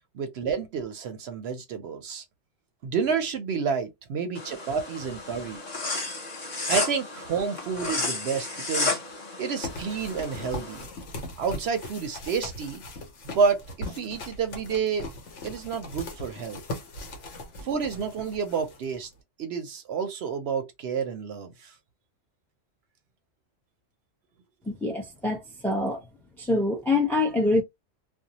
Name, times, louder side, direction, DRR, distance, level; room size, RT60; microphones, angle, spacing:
voice 1, 0.1-2.2 2.8-5.6 6.7-9.0 9.4-10.9 11.4-12.8 13.2-15.1 15.4-16.6 17.6-19.1 19.4-21.7, right 6 dB, 65° right, 0.7 m, -29 dB
sound 1, 4.4-10.8, left 3 dB, 40° left, 0.8 m, -32 dB
sound 2, 9.6-19.1, left 1 dB, 70° left, 1.1 m, -39 dB
voice 2, 24.7-26.0 26.4-27.6, left 2 dB, 5° left, 0.4 m, -25 dB
2.6 x 2.0 x 2.7 m
omnidirectional pair, 1.3 m